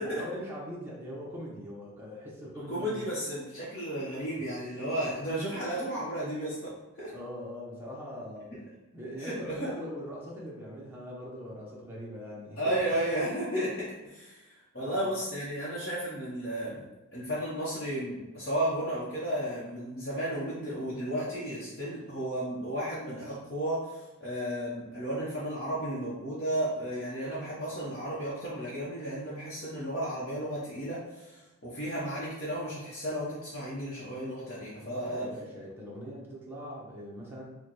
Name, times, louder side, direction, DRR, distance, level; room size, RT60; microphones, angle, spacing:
voice 1, 0.0-3.0 4.7-5.0 7.0-8.5 8.9-12.8 14.8-15.1 34.8-37.4, equal, 10° right, -5 dB, 0.7 m, -41 dB
voice 2, 2.7-7.1 9.2-9.7 12.6-16.8 17.1-35.2, right 1 dB, 45° left, -9 dB, 0.9 m, -33 dB
4.8 x 2.2 x 3.0 m, 1.1 s
head